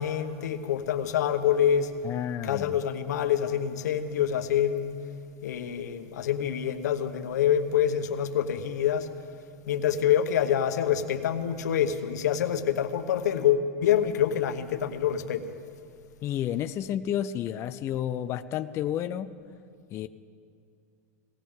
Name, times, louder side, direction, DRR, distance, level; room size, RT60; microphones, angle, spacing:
voice 1, 0.0-1.9 2.4-5.0 5.4-9.1 9.7-15.5, left 9 dB, 85° left, 8 dB, 1.0 m, -26 dB
voice 2, 2.0-2.8 16.2-19.3 19.9-20.1, left 10 dB, 30° left, 9 dB, 0.4 m, -31 dB
18.5 x 17.0 x 3.7 m, 2.4 s
supercardioid pair, 135°, 9 cm